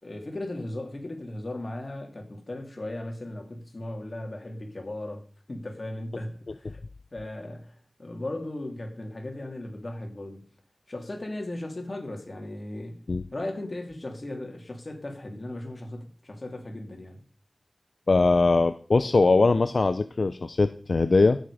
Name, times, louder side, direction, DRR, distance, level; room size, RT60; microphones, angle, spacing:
voice 1, 0.0-6.8 7.1-10.5 10.9-13.1 13.3-17.2, left 1 dB, 40° left, 3.1 m, -37 dB
voice 2, 18.1-21.4, left 3 dB, 60° left, 0.6 m, -21 dB
16.0 x 7.3 x 5.0 m
wide cardioid pair, 80°, 0 cm